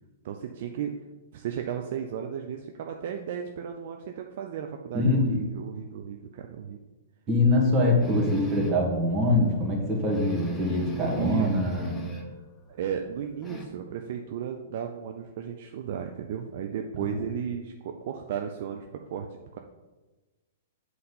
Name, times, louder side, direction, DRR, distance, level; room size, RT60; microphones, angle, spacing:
voice 1, 0.2-0.9 1.3-6.8 11.2-11.5 12.7-19.6, right 8 dB, 55° right, 4 dB, 0.5 m, -34 dB
voice 2, 4.9-5.5 7.3-12.0, left 1 dB, 25° right, -2 dB, 2.2 m, -24 dB
sound 1, 8.0-8.9 9.4-9.5 9.8-9.9 10.1-12.4 12.7-13.7, right 1 dB, 10° left, 1.1 m, -38 dB
7.7 x 4.0 x 5.4 m, 1.2 s
figure-of-eight pair, 110°, 0 cm